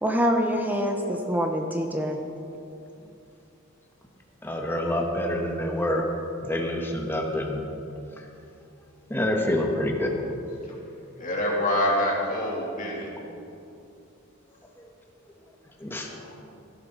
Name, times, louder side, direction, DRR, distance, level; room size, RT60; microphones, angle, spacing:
voice 1, 0.0-2.2, equal, 10° right, 3 dB, 0.8 m, -25 dB
voice 2, 4.4-6.0 6.4-7.6 8.2-8.3 9.1-10.2 14.8-14.9 15.8-16.1, left 1 dB, 10° left, 1 dB, 1.3 m, -27 dB
voice 3, 11.2-13.1 16.0-16.3, left 1 dB, 40° left, -4 dB, 3.0 m, -26 dB
17.0 x 12.5 x 4.0 m, 2.7 s
head